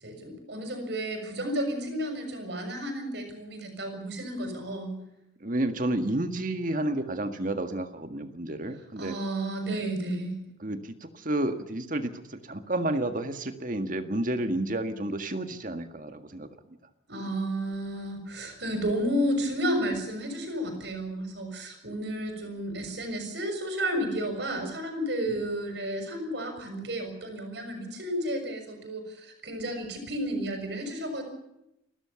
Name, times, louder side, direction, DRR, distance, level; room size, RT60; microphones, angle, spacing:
voice 1, 0.0-5.0 9.0-10.4 17.1-31.2, right 1 dB, 60° right, 5 dB, 6.7 m, -32 dB
voice 2, 5.4-9.2 10.6-16.5, right 1 dB, 45° right, 8 dB, 1.8 m, -31 dB
29.5 x 13.0 x 7.1 m, 0.85 s
head